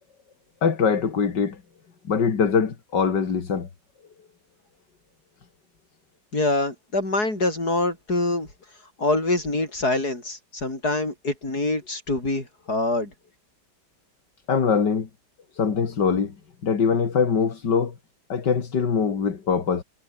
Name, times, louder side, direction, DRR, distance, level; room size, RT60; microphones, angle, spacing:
voice 1, 0.6-1.6 2.1-3.7 14.5-15.1 15.5-16.3 16.6-17.9 18.3-19.8, left 6 dB, 75° left, 2.9 m, -22 dB
voice 2, 6.3-8.5 9.0-13.1, left 2 dB, 60° left, 7.7 m, -25 dB
omnidirectional pair, 1.9 m